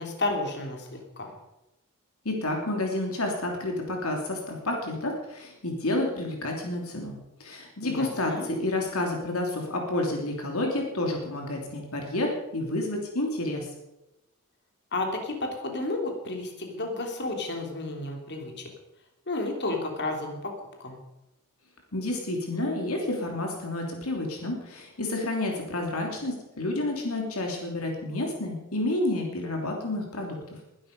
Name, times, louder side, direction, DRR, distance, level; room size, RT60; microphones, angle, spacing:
voice 1, 0.0-1.3 7.8-8.5 14.9-18.7 19.3-20.5 20.8-21.0, left 2 dB, 50° left, 2 dB, 3.3 m, -32 dB
voice 2, 2.2-13.7 21.9-30.6, left 2 dB, 75° left, 1 dB, 3.0 m, -30 dB
22.0 x 12.0 x 5.3 m, 0.96 s
head